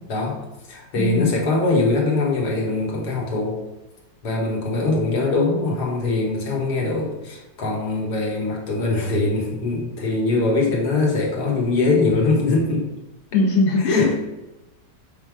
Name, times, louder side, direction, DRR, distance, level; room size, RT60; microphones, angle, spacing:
voice 1, 0.1-0.4 0.7-3.6 4.2-12.8 13.8-14.1, left 3 dB, 70° left, -1 dB, 1.7 m, -22 dB
voice 2, 1.0-1.5 4.8-5.2 13.3-14.1, left 2 dB, 45° left, -1 dB, 1.1 m, -21 dB
5.4 x 3.8 x 4.6 m, 1.0 s
omnidirectional pair, 1.9 m